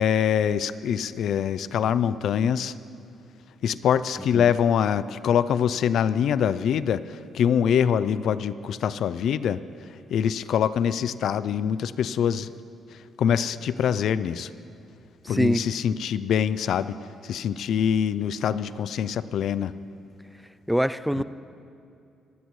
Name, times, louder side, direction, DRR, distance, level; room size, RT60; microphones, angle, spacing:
voice 1, 0.0-2.8 3.6-12.5 12.9-14.5 15.3-19.7 21.2-21.3, left 8 dB, 70° left, 16 dB, 0.4 m, -24 dB
voice 2, 15.3-15.7 20.7-21.2, equal, ahead, 14 dB, 0.3 m, -23 dB
24.5 x 12.5 x 3.2 m, 2.5 s
cardioid pair, 90°, 0 cm